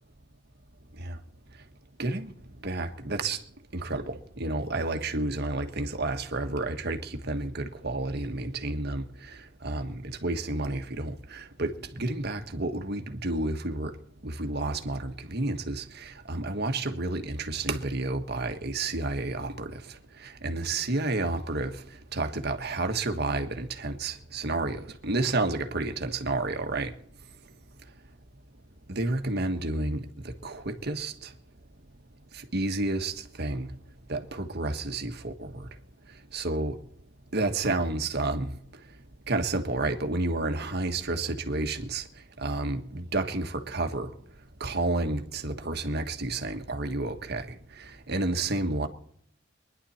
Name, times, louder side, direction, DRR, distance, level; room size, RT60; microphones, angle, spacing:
voice 1, 2.0-2.3 2.6-3.4 3.7-9.1 9.6-13.9 14.2-19.8 20.2-21.8 22.1-26.9 28.9-30.0 30.4-31.3 32.3-33.7 34.1-35.7 36.3-36.8 37.3-38.5 39.3-42.0 42.4-44.1 44.6-47.5 47.8-48.9, right 2 dB, 55° right, 1.5 m, -30 dB
24.0 x 11.0 x 4.3 m
head